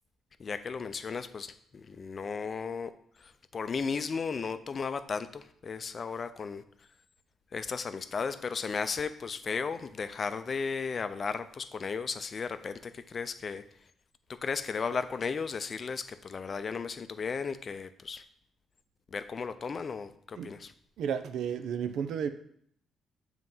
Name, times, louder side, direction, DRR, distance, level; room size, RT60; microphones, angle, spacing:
voice 1, 0.4-2.9 3.2-6.6 7.5-13.6 14.4-18.2 19.1-20.7, left 5 dB, 40° left, 11 dB, 0.5 m, -35 dB
voice 2, 21.0-22.3, right 7 dB, 75° right, 10 dB, 0.5 m, -32 dB
7.6 x 3.0 x 5.4 m, 0.66 s
cardioid pair, 90°, 0 cm